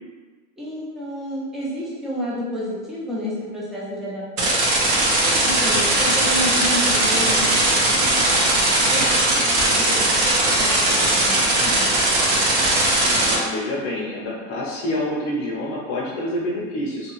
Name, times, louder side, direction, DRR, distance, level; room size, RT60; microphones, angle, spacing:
voice 1, 0.6-4.7 5.4-8.4 8.9-11.9, equal, ahead, -8 dB, 0.3 m, -31 dB
sound 1, 4.4-13.3, right 1 dB, 60° right, 1.0 m, -19 dB
voice 2, 13.0-17.1, left 1 dB, 35° left, -4 dB, 0.6 m, -27 dB
2.7 x 2.3 x 3.0 m, 1.4 s
supercardioid pair, 130°, 38 cm